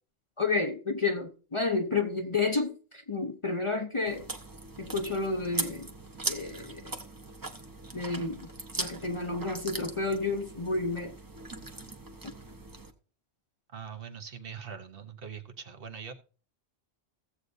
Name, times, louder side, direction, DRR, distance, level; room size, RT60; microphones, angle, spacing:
voice 1, 0.4-4.3 4.8-5.9 6.3-6.8 7.9-11.2, left 3 dB, 30° left, 0.7 m, -31 dB
Chewing mastication, 4.1-12.9, right 2 dB, 20° right, 0.9 m, -40 dB
voice 2, 13.7-16.1, right 7 dB, 60° right, 1.1 m, -42 dB
16.0 x 7.9 x 2.7 m
omnidirectional pair, 1.1 m